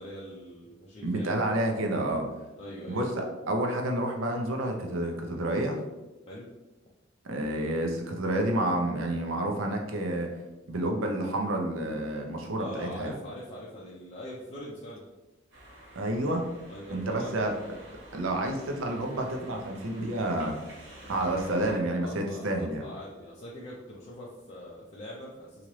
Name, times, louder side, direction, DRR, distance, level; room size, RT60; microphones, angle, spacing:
voice 1, 0.0-1.4 2.6-3.0 6.3-6.5 12.6-15.1 16.7-17.3 22.0-25.7, left 1 dB, 35° left, -5 dB, 0.4 m, -43 dB
voice 2, 1.0-2.3 2.9-5.8 7.2-10.3 10.7-13.1 16.0-16.4 16.9-17.5 18.1-20.6 21.1-22.8, right 1 dB, 90° right, 3 dB, 0.5 m, -29 dB
sound 1, 15.5-21.8, right 1 dB, 60° right, 1.1 m, -49 dB
2.9 x 2.4 x 3.1 m, 1.1 s
head